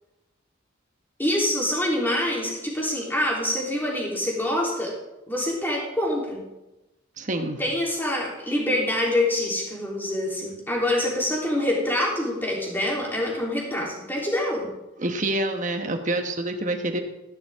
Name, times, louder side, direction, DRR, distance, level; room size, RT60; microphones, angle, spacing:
voice 1, 1.2-4.9 5.3-6.4 7.6-14.7, left 1 dB, 10° left, -4 dB, 3.4 m, -25 dB
voice 2, 7.2-7.6 15.0-17.0, right 1 dB, 40° right, 5 dB, 1.3 m, -27 dB
14.5 x 11.0 x 3.7 m, 0.98 s
head